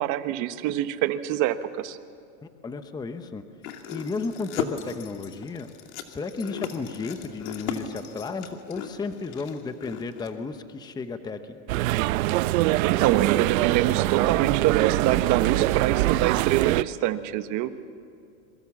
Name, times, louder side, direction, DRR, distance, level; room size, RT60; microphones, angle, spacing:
voice 1, 0.0-2.0 12.8-17.7, right 13 dB, 45° right, 10 dB, 1.3 m, -25 dB
voice 2, 2.4-3.4 3.9-5.7 6.1-11.6, left 4 dB, 10° left, 9 dB, 0.8 m, -33 dB
sound 1, 3.6-10.3, left 8 dB, 70° left, 2.5 m, -37 dB
sound 2, 11.7-16.8, right 17 dB, 75° right, 0.7 m, -23 dB
27.5 x 23.0 x 7.3 m, 2.3 s
supercardioid pair, 150°, 42 cm